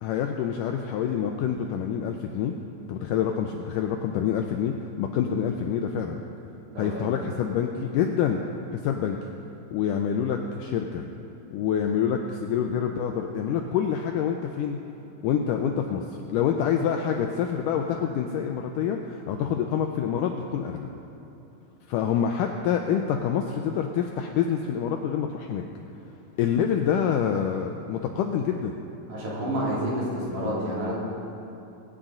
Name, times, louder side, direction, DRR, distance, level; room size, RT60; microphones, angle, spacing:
voice 1, 0.0-2.5 2.9-6.2 6.8-8.4 8.8-9.2 9.7-11.1 11.5-14.8 15.2-16.0 16.3-20.9 21.9-25.6 26.4-28.8, left 8 dB, 85° left, 4 dB, 1.9 m, -26 dB
voice 2, 6.7-7.1 29.1-30.9, equal, 55° right, -7 dB, 4.0 m, -29 dB
21.5 x 9.1 x 3.8 m, 2.9 s
omnidirectional pair, 4.3 m